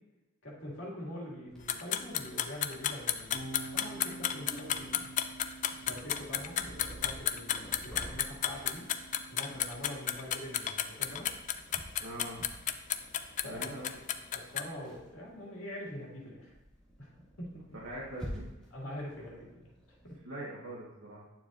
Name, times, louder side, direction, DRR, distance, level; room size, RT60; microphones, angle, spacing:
voice 1, 0.4-5.2 5.8-8.9 9.3-11.3 13.4-13.7 14.3-16.5 17.0-17.1 17.4-17.6 18.7-19.7 20.0-20.2, left 1 dB, 70° left, -3 dB, 2.3 m, -44 dB
Purr, 1.5-20.2, equal, 5° left, 1.7 m, -51 dB
sound 1, 1.7-14.6, left 10 dB, 40° left, 0.4 m, -32 dB
sound 2, 3.3-9.6, right 3 dB, 35° right, 2.0 m, -49 dB
voice 2, 12.0-12.4 13.4-14.1 17.8-18.4 20.2-21.2, right 1 dB, 90° right, -6 dB, 1.5 m, -42 dB
9.2 x 7.1 x 2.6 m, 1.1 s
head